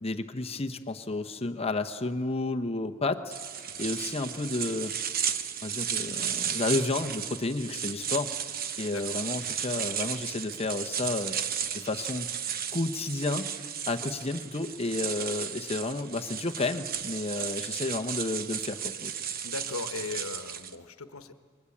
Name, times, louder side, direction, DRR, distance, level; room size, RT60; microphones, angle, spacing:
voice 1, 0.0-4.9 5.6-8.3 8.8-11.4 11.7-12.3 12.7-19.1, left 2 dB, 30° left, 7 dB, 0.9 m, -31 dB
sound 1, 3.3-20.7, right 8 dB, 45° right, 0.9 m, -34 dB
voice 2, 8.9-9.2 19.4-21.3, left 4 dB, 85° left, 9 dB, 1.3 m, -38 dB
28.5 x 22.5 x 8.6 m, 2.1 s
head